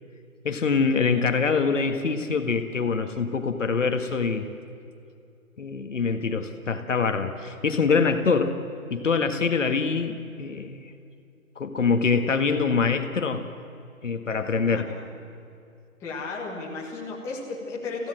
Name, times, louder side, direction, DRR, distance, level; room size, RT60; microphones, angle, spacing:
voice 1, 0.4-4.5 5.6-8.6 8.9-10.9 11.5-13.4 14.0-14.9, left 5 dB, 60° left, 7 dB, 1.8 m, -24 dB
voice 2, 14.7-15.0 16.0-18.1, left 3 dB, 5° left, -4 dB, 1.7 m, -34 dB
27.5 x 16.5 x 7.7 m, 2.5 s
figure-of-eight pair, 155°, 42 cm